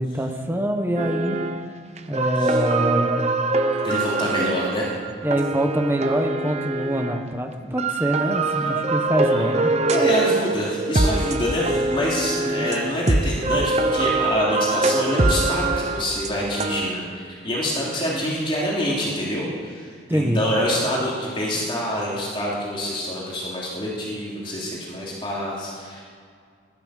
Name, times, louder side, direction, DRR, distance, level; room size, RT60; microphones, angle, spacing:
voice 1, 0.0-1.4 2.1-3.3 5.2-9.7 12.4-12.7 18.1-18.4 20.1-20.4, right 1 dB, 10° right, 4 dB, 1.2 m, -25 dB
sound 1, 1.0-1.7 2.0-7.3 7.8-16.9, right 3 dB, 35° right, 0.8 m, -24 dB
voice 2, 3.8-4.9 9.2-9.5 9.9-26.0, equal, 25° left, -5 dB, 3.2 m, -26 dB
16.0 x 12.0 x 6.6 m, 2.1 s
head